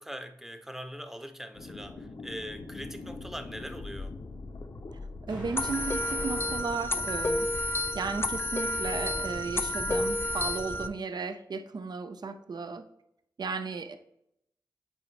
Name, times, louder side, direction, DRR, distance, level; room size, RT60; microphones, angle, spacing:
voice 1, 0.0-4.2, equal, 5° right, 0.7 m, -42 dB
sound 1, 1.5-10.9, left 3 dB, 65° left, 0.7 m, -43 dB
voice 2, 5.3-7.5 7.9-12.8 13.4-14.0, right 4 dB, 65° right, 0.6 m, -35 dB
Explosion, 5.3-8.3, right 1 dB, 80° right, 2.3 m, -47 dB
sound 2, 5.6-10.9, left 1 dB, 30° left, 0.5 m, -30 dB
8.6 x 4.1 x 3.3 m
cardioid pair, 55°, 8 cm